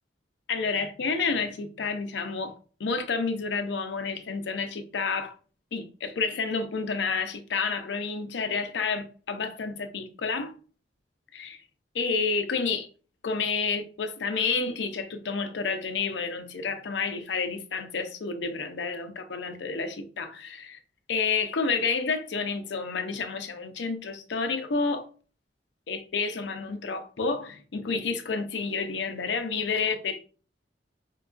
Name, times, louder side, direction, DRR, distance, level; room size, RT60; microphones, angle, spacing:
voice 1, 0.5-2.5 2.8-5.3 5.7-10.5 11.3-11.6 11.9-12.9 13.2-20.8 21.1-25.1 25.9-30.2, left 4 dB, 70° left, 0.5 m, -30 dB
4.4 x 2.3 x 2.4 m
head